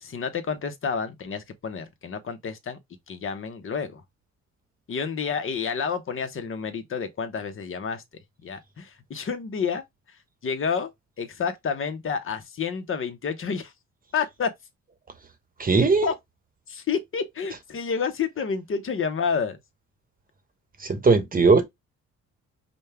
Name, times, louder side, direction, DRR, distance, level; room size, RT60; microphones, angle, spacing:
voice 1, 0.0-2.8 3.1-4.0 4.9-8.0 8.4-10.9 11.2-13.7 14.1-14.5 16.0-16.1 16.7-19.6, left 6 dB, 45° left, 1.0 m, -29 dB
voice 2, 15.6-16.1 20.8-21.6, right 4 dB, 30° right, 1.0 m, -19 dB
5.2 x 2.3 x 3.4 m
cardioid pair, 90°, 30 cm